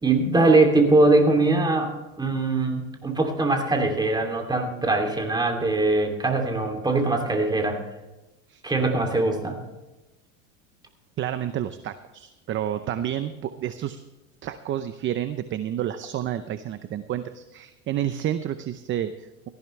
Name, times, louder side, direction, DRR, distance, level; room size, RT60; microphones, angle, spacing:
voice 1, 0.0-7.8 8.6-9.6, right 2 dB, 10° right, 3 dB, 2.8 m, -22 dB
voice 2, 11.2-14.0 14.4-19.5, right 11 dB, 30° right, 11 dB, 0.7 m, -30 dB
18.0 x 14.5 x 3.3 m, 1.0 s
supercardioid pair, 135°, 38 cm